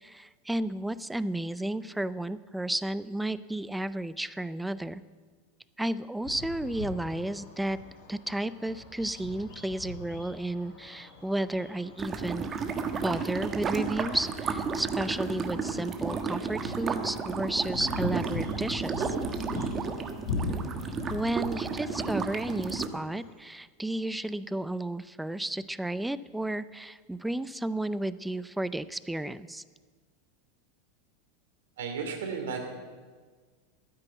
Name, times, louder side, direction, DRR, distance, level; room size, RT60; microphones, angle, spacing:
voice 1, 0.0-5.0 5.8-7.8 8.1-12.5 13.0-19.2 21.1-29.6, right 1 dB, 5° right, 17 dB, 0.5 m, -32 dB
sound 1, 6.2-23.3, left 3 dB, 70° left, 4.1 m, -41 dB
sound 2, 12.0-22.9, right 5 dB, 30° right, 1.3 m, -33 dB
voice 2, 31.8-32.7, right 5 dB, 75° right, 4 dB, 2.6 m, -34 dB
12.5 x 9.8 x 8.1 m, 1.5 s
hypercardioid pair, 95°, 0 cm